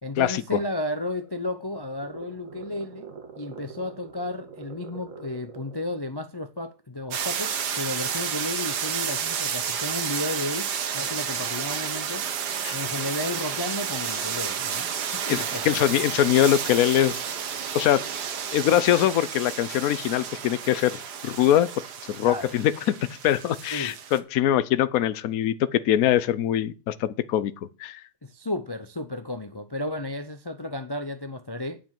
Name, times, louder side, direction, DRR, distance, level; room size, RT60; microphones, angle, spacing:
voice 1, 0.0-12.3 12.7-15.9 22.2-22.6 23.7-24.0 28.2-31.8, left 1 dB, 35° left, 0.4 m, -33 dB
sound 1, 1.0-5.9, right 6 dB, 55° right, 2.1 m, -44 dB
sound 2, 7.1-24.2, right 7 dB, 80° right, 1.7 m, -31 dB
voice 2, 15.3-17.2 17.7-18.0 18.5-21.7 22.1-22.7 23.1-27.5 27.8-28.0, left 11 dB, 65° left, 1.1 m, -23 dB
8.7 x 7.5 x 7.5 m
omnidirectional pair, 1.7 m